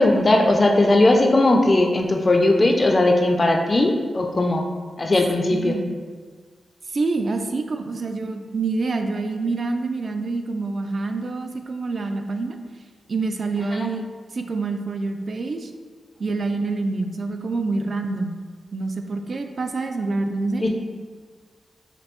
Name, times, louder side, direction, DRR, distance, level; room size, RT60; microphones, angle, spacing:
voice 1, 0.0-4.7 5.0-5.8 13.8-13.9 20.6-20.7, left 2 dB, 35° left, 3 dB, 0.4 m, -18 dB
voice 2, 5.5-6.0 6.9-12.6 13.1-15.7 16.2-18.4 18.7-20.6, right 3 dB, 50° right, 6 dB, 0.3 m, -26 dB
5.1 x 2.6 x 3.0 m, 1.5 s
wide cardioid pair, 100°, 0 cm